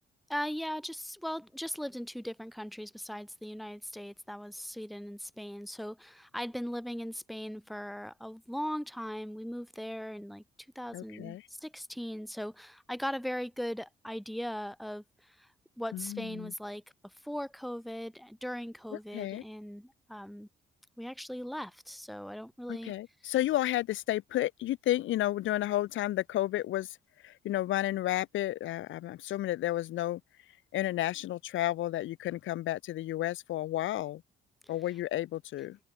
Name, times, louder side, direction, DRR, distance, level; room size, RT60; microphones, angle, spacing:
voice 1, 0.3-10.4 10.7-15.5 15.8-20.5 21.0-22.9, equal, ahead, 1.1 m, -39 dB
voice 2, 10.9-11.5 15.9-16.5 19.1-19.4 22.7-27.0 27.2-30.2 30.7-34.2 34.7-35.8, left 14 dB, 75° left, 0.9 m, -32 dB
cardioid pair, 90°, 20 cm